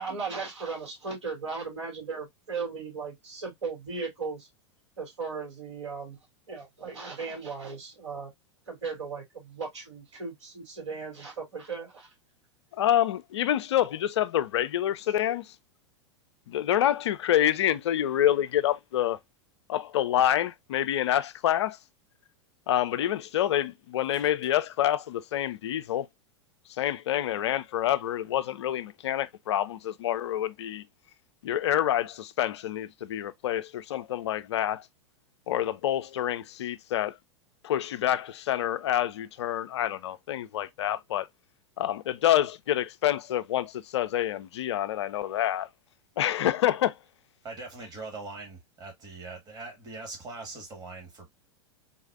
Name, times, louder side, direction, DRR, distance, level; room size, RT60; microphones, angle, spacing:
voice 1, 0.0-4.5 5.0-6.2 6.5-8.3 8.7-12.1, right 4 dB, 70° right, 2.1 m, -37 dB
voice 2, 12.8-15.4 16.5-19.2 19.7-21.8 22.7-26.1 26.8-30.8 31.4-34.8 35.5-37.2 37.6-41.3 41.8-45.7 46.2-46.9, left 12 dB, 65° left, 0.4 m, -27 dB
voice 3, 47.4-51.3, right 3 dB, 25° right, 1.5 m, -42 dB
3.9 x 2.4 x 2.3 m
figure-of-eight pair, 90°, 16 cm